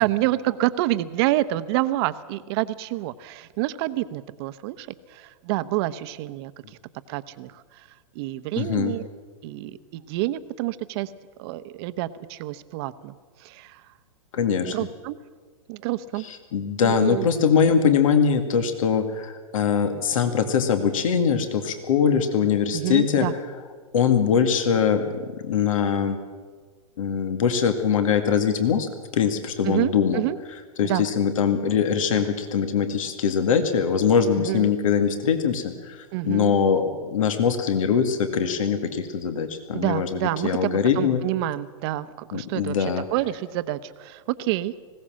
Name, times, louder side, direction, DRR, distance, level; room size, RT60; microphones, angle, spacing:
voice 1, 0.0-6.5 7.1-7.6 8.1-9.1 9.4-11.1 11.4-13.1 13.4-13.8 14.7-15.2 15.7-16.3 16.8-17.3 22.7-23.3 29.6-30.4 30.8-31.0 34.4-34.7 36.1-36.5 39.7-42.7 43.1-44.7, right 16 dB, 45° right, 12 dB, 1.0 m, -28 dB
voice 2, 8.6-9.0 14.3-14.8 16.2-23.4 23.9-26.2 27.0-30.2 30.8-41.2 42.3-43.1, left 7 dB, 70° left, 8 dB, 2.1 m, -22 dB
20.0 x 17.0 x 7.6 m, 1.5 s
hypercardioid pair, 125°, 18 cm